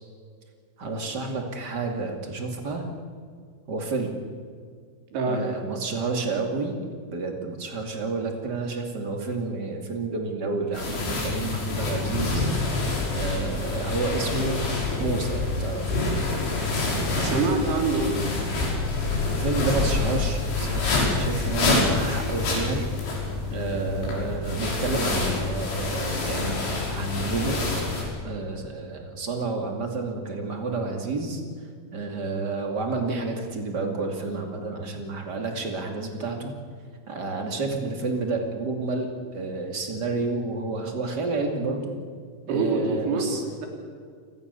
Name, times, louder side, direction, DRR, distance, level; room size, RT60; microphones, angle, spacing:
voice 1, 0.8-2.8 3.7-4.1 5.2-12.5 13.1-14.7 15.0-15.9 19.3-22.8 23.5-27.6 28.2-31.4 31.9-36.5 37.1-41.9 42.5-43.4, right 3 dB, 30° right, 3 dB, 2.1 m, -30 dB
voice 2, 5.1-5.4 17.2-18.2 42.5-43.3, right 3 dB, 75° right, 2 dB, 5.6 m, -25 dB
sound 1, 10.7-28.0, left 3 dB, 80° left, 7.9 m, -27 dB
29.5 x 19.5 x 6.9 m, 2.1 s
omnidirectional pair, 5.2 m